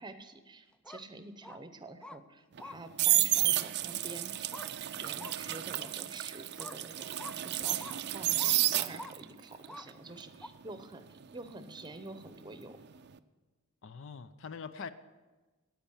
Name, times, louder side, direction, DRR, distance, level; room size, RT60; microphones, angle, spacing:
voice 1, 0.0-4.5 4.9-12.8, right 2 dB, 20° right, 0.8 m, -48 dB
sound 1, 0.7-1.0 1.4-1.6 2.0-2.2 2.6-2.8 3.4-3.5 4.5-4.7 5.2-5.4 5.8-5.9 6.6-6.8 7.2-7.4 7.8-8.0 8.4-8.6 9.0-9.1 9.7-9.9 10.4-10.5, left 1 dB, 5° left, 0.3 m, -46 dB
sound 2, 2.5-9.3 9.6-12.5 12.8-13.1, right 15 dB, 55° right, 0.4 m, -31 dB
voice 2, 13.8-14.9, left 5 dB, 65° left, 0.6 m, -43 dB
10.0 x 9.0 x 7.2 m
head